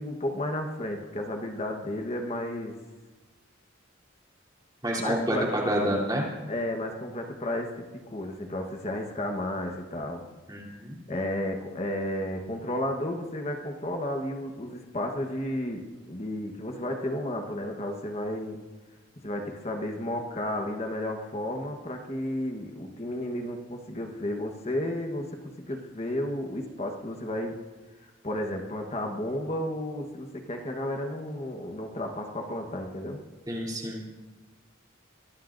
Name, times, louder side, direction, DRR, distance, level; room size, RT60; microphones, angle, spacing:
voice 1, 0.0-2.8 5.0-5.4 6.5-7.7 8.1-10.2 11.1-18.6 19.2-27.6 28.0-33.2, left 1 dB, 30° left, 3 dB, 1.2 m, -32 dB
voice 2, 4.8-6.2 10.5-11.0 33.5-34.1, equal, 20° right, -4 dB, 3.2 m, -28 dB
23.5 x 18.0 x 2.6 m, 1.2 s
head